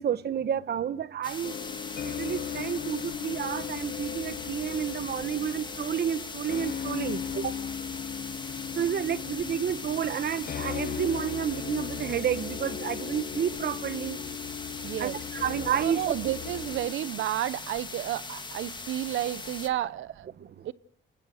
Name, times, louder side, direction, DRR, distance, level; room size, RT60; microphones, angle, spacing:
voice 1, 0.0-1.6 2.0-7.5 8.8-14.2 15.0-16.3 20.4-20.5, right 9 dB, 55° right, 1.2 m, -30 dB
sound 1, 1.2-19.7, left 3 dB, 25° left, 1.8 m, -40 dB
sound 2, 1.4-16.9, left 9 dB, 50° left, 1.0 m, -37 dB
voice 2, 14.8-15.2 15.8-20.2 20.6-20.7, right 13 dB, 80° right, 0.9 m, -31 dB
28.0 x 20.5 x 6.4 m
cardioid pair, 90°, 20 cm